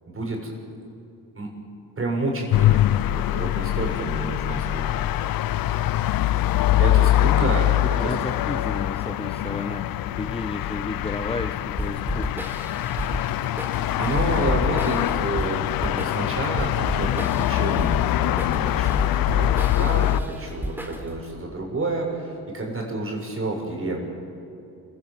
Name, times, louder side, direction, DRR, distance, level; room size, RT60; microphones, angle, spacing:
voice 1, 0.1-0.5 1.4-1.5 2.0-5.0 6.8-8.1 14.0-24.0, right 2 dB, 35° right, 0 dB, 7.4 m, -29 dB
sound 1, 2.5-20.2, left 13 dB, 70° left, 0.7 m, -23 dB
voice 2, 7.8-12.4, left 3 dB, 15° left, 7 dB, 1.1 m, -32 dB
sound 2, 11.8-21.3, equal, 5° right, 3.8 m, -32 dB
27.5 x 17.5 x 7.8 m, 2.8 s
supercardioid pair, 65°, 36 cm